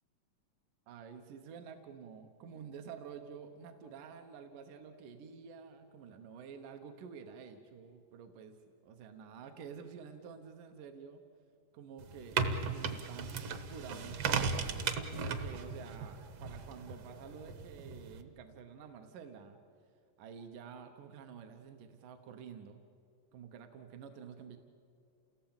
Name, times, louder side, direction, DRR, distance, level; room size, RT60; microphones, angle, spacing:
voice 1, 0.9-8.6 8.8-11.2 11.7-14.9 15.3-19.6 20.2-22.8 23.3-24.6, right 6 dB, 75° right, 6 dB, 2.6 m, -50 dB
sound 1, 12.0-18.2, right 5 dB, 60° right, 2.0 m, -37 dB
28.5 x 17.5 x 8.8 m, 2.4 s
omnidirectional pair, 3.7 m